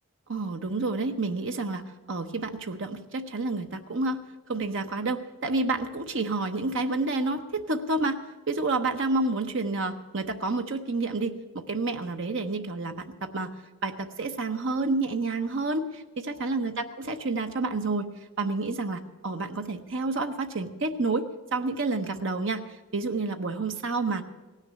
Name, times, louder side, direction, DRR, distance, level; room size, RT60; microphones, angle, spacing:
voice 1, 0.3-4.2 4.5-8.2 8.5-18.1 18.4-22.6 22.9-24.2, right 3 dB, 55° right, 6 dB, 0.8 m, -29 dB
17.0 x 6.6 x 8.5 m, 1.2 s
head